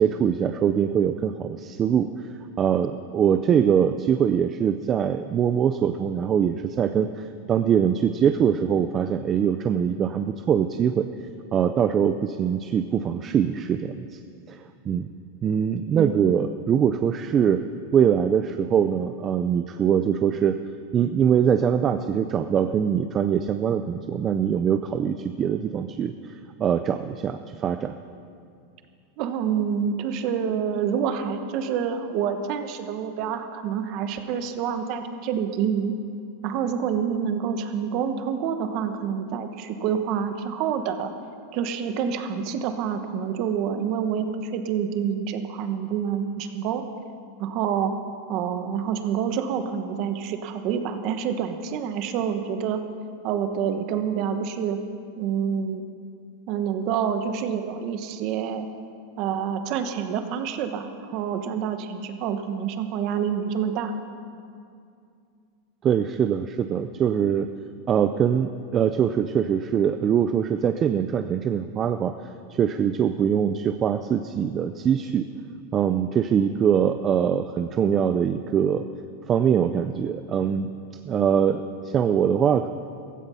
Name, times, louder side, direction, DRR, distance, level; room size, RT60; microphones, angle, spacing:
voice 1, 0.0-2.1 2.6-7.1 7.5-11.1 11.5-14.1 14.5-14.6 14.9-15.1 15.4-17.6 17.9-20.6 20.9-26.1 26.6-27.9 65.8-67.5 67.9-72.1 72.5-75.3 75.7-78.8 79.3-80.7 81.1-82.7, right 8 dB, 20° right, 9 dB, 0.4 m, -23 dB
voice 2, 15.9-16.3 29.2-35.9 36.4-41.1 41.5-46.8 47.4-47.9 48.3-52.8 53.2-54.8 55.2-55.8 56.5-58.7 59.2-63.9, right 7 dB, 35° right, 8 dB, 1.1 m, -27 dB
15.5 x 15.5 x 5.6 m, 2.4 s
supercardioid pair, 175°, 0 cm